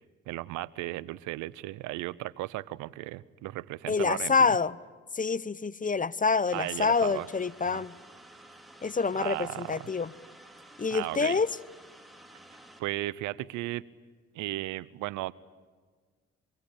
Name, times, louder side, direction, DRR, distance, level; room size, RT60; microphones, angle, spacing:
voice 1, 0.3-4.4 6.5-7.3 7.7-7.8 9.2-9.9 10.9-11.4 12.8-13.9 14.3-15.3, right 17 dB, 80° right, 21 dB, 0.8 m, -35 dB
voice 2, 3.9-4.8 5.1-7.9 8.8-10.1 10.8-11.5, left 5 dB, 25° left, 19 dB, 0.9 m, -27 dB
sound 1, 6.5-12.8, right 1 dB, ahead, 5.1 m, -52 dB
25.0 x 25.0 x 8.9 m, 1.5 s
hypercardioid pair, 50°, 29 cm